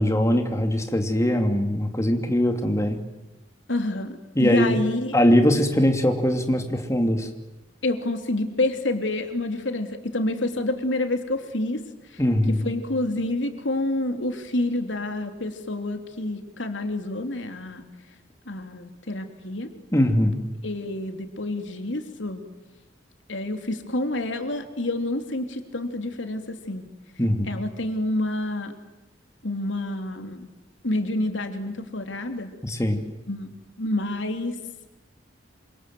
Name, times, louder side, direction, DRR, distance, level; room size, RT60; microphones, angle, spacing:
voice 1, 0.0-3.0 4.3-4.8 5.1-7.3 12.2-12.7 19.9-20.4 27.2-27.6 32.6-33.0, equal, 15° left, 5 dB, 2.9 m, -21 dB
voice 2, 3.7-5.2 7.8-11.8 12.1-12.2 12.5-17.8 18.5-19.7 20.6-22.4 23.3-26.8 27.5-28.7 29.4-30.5 30.8-32.5 33.3-34.6, left 1 dB, 85° left, 6 dB, 3.1 m, -28 dB
28.0 x 26.0 x 7.8 m, 0.99 s
head